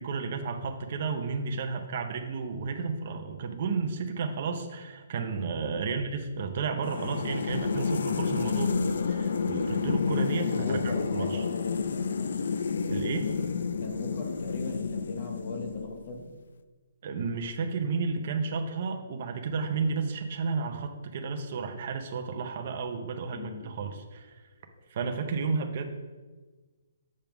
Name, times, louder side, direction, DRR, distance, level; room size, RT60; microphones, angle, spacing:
voice 1, 0.0-8.7 9.1-10.8 11.1-11.4 12.9-13.3 17.0-24.4 24.9-25.8, right 4 dB, 40° right, 4 dB, 0.6 m, -32 dB
sound 1, 6.8-16.2, left 5 dB, 70° left, 0.4 m, -30 dB
voice 2, 10.6-12.4 13.8-16.3 23.3-23.7, left 2 dB, 45° left, 3 dB, 0.9 m, -39 dB
7.5 x 3.5 x 5.8 m, 1.3 s
hypercardioid pair, 170°, 0 cm